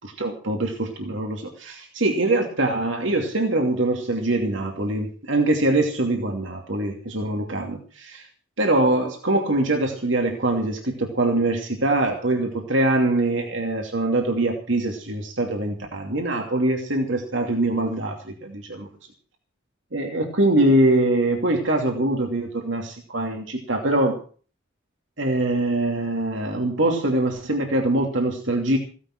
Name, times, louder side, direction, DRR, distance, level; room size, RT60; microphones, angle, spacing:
voice 1, 0.0-8.3 8.6-18.9 19.9-24.2 25.2-28.8, right 2 dB, 80° right, 2 dB, 2.8 m, -23 dB
16.5 x 11.5 x 6.1 m, 0.40 s
head